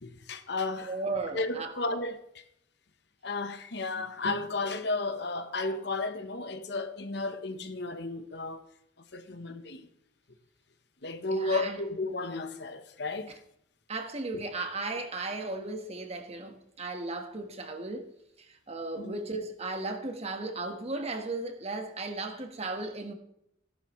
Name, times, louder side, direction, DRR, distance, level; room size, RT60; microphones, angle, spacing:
voice 1, 0.0-0.9 1.3-2.4 3.2-8.6 9.1-9.9 11.0-13.3 14.3-14.4 19.0-19.2, left 2 dB, 60° left, 1.1 m, -33 dB
voice 2, 0.8-1.9 11.3-11.8 13.9-18.1 18.5-23.1, right 2 dB, 35° right, 1.4 m, -36 dB
16.0 x 11.5 x 3.2 m
head